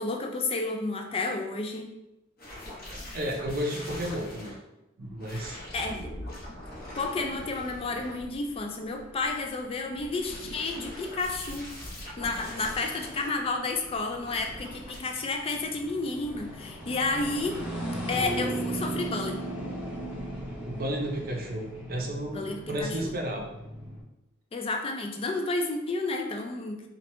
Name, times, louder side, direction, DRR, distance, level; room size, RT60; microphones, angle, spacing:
voice 1, 0.0-1.9 5.4-6.1 7.0-11.7 12.2-17.6 18.1-19.4 22.3-23.1 24.5-26.8, left 3 dB, 30° left, 4 dB, 0.3 m, -31 dB
sound 1, 2.4-4.6 5.2-8.6 9.9-13.3 14.2-15.0, left 1 dB, 45° left, 0.8 m, -42 dB
voice 2, 2.8-4.5 5.0-5.6 20.6-23.4, equal, 45° right, 1 dB, 0.6 m, -33 dB
sound 2, 5.1-24.0, right 1 dB, 10° right, 0.9 m, -39 dB
2.9 x 2.5 x 3.1 m, 0.91 s
head